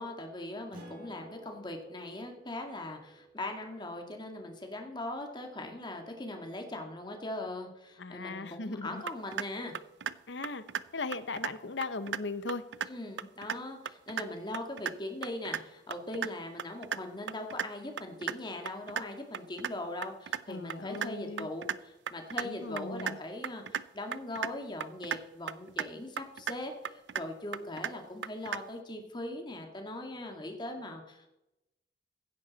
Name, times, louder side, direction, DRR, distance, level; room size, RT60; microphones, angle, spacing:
voice 1, 0.0-9.7 12.9-31.3, left 1 dB, 25° left, 4 dB, 1.9 m, -40 dB
Acoustic guitar, 0.7-5.7, right 1 dB, 50° right, 5.3 m, -54 dB
voice 2, 8.0-9.0 10.3-10.6 10.9-12.6 20.5-21.5 22.4-23.2, left 3 dB, 90° left, 13 dB, 1.0 m, -38 dB
sound 1, 9.1-9.4 9.7-10.2 10.4-10.8 11.1-11.5 11.8-12.2 12.5-12.9 13.2-13.6 13.9-14.2 14.5-14.9 15.2-15.6 15.9-16.3 16.6-17.0 17.3-17.7 18.0-18.3 18.7-19.0 19.3-19.7 20.0-20.4 20.7-21.1 21.4-21.8 22.1-22.4 22.8-23.1 23.4-23.8 24.1-24.5 24.8-25.2 25.5-25.9 26.2-26.5 26.8-27.2 27.5-27.9 28.2-28.6, right 8 dB, 80° right, 0.5 m, -34 dB
16.0 x 10.5 x 4.1 m, 0.93 s
head